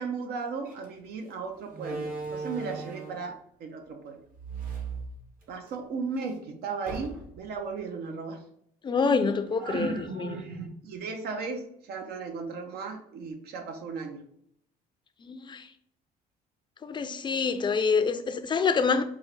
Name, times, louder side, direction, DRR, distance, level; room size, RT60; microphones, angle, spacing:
voice 1, 0.0-4.2 5.5-8.4 9.6-14.2, right 4 dB, 70° right, 0.8 m, -36 dB
Slam, 0.6-0.8 1.7-3.3 4.3-5.7 6.1-6.2 6.8-7.5, right 4 dB, 55° right, 1.3 m, -37 dB
voice 2, 8.8-9.9 15.2-15.6 16.8-19.0, left 5 dB, 30° left, 0.4 m, -26 dB
4.4 x 2.5 x 3.2 m
cardioid pair, 110°, 17 cm